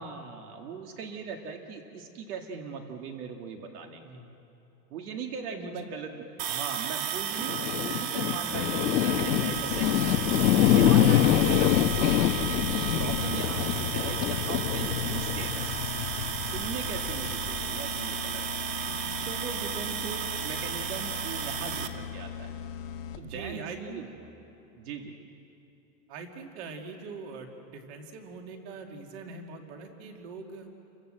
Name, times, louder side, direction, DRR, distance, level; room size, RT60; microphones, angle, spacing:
voice 1, 0.0-4.0 4.9-10.2 10.6-11.9 12.7-15.7 16.5-18.4 19.2-22.5 23.1-24.1 24.7-25.3, right 5 dB, 60° right, 3 dB, 2.1 m, -39 dB
voice 2, 4.0-4.3 5.5-5.9 12.7-13.2 18.8-19.1 23.2-24.1 26.1-30.7, right 4 dB, 40° right, 3 dB, 2.5 m, -43 dB
sound 1, 6.4-21.9, right 8 dB, 80° right, 2.2 m, -33 dB
sound 2, 7.4-17.8, left 11 dB, 90° left, 1.3 m, -26 dB
sound 3, 12.1-23.5, left 8 dB, 50° left, 1.5 m, -40 dB
29.5 x 23.5 x 7.8 m, 2.9 s
supercardioid pair, 175°, 50 cm